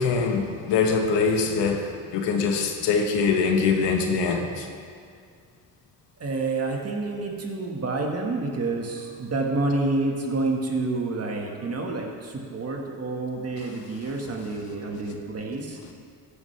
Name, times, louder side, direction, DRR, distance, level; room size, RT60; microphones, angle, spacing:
voice 1, 0.0-4.7, left 5 dB, 90° left, 1.3 m, -23 dB
voice 2, 6.2-15.8, right 3 dB, 35° right, 1.7 m, -28 dB
14.0 x 10.0 x 3.4 m
cardioid pair, 105°, 41 cm